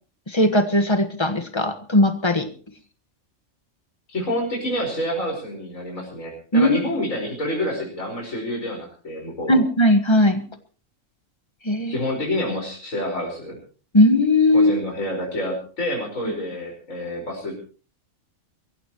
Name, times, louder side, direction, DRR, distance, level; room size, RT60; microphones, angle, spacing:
voice 1, 0.3-2.5 6.5-6.8 9.5-10.4 11.6-12.0 13.9-14.7, left 1 dB, 20° left, 9 dB, 1.5 m, -18 dB
voice 2, 4.1-9.6 11.9-13.6 14.5-17.6, left 1 dB, 90° left, 0 dB, 5.4 m, -28 dB
23.0 x 15.0 x 3.1 m, 0.39 s
omnidirectional pair, 1.3 m